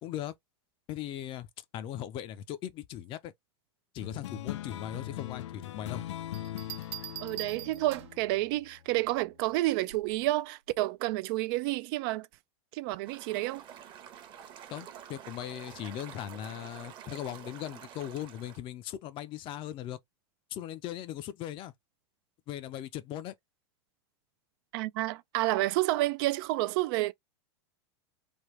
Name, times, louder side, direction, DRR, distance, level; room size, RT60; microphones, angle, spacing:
voice 1, 0.0-0.3 0.9-1.5 1.7-3.3 3.9-6.0 14.7-20.0 20.5-21.7 22.5-23.3, left 11 dB, 35° left, 0.5 m, -39 dB
sound 1, 4.0-8.9, left 13 dB, 90° left, 0.4 m, -40 dB
Bell, 6.3-8.3 9.9-10.2, right 13 dB, 75° right, 0.9 m, -43 dB
voice 2, 7.2-12.3 12.7-13.6 24.7-27.1, right 17 dB, 50° right, 0.4 m, -30 dB
sound 2, 13.1-18.6, right 9 dB, 35° right, 0.9 m, -48 dB
3.5 x 2.2 x 3.1 m
supercardioid pair, 135°, 15 cm